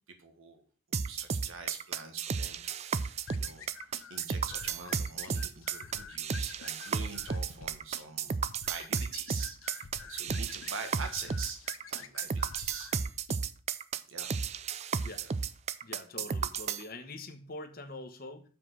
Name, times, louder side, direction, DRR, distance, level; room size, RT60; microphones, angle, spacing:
voice 1, 0.2-12.9 14.1-14.4 15.2-15.4, right 4 dB, 90° right, 5 dB, 1.6 m, -45 dB
sound 1, 0.9-16.8, right 6 dB, 30° right, 0.3 m, -33 dB
sound 2, 3.3-13.4, left 6 dB, 90° left, 0.7 m, -49 dB
voice 2, 15.8-18.4, left 2 dB, 45° left, 7 dB, 1.1 m, -44 dB
7.4 x 4.8 x 6.1 m, 0.40 s
head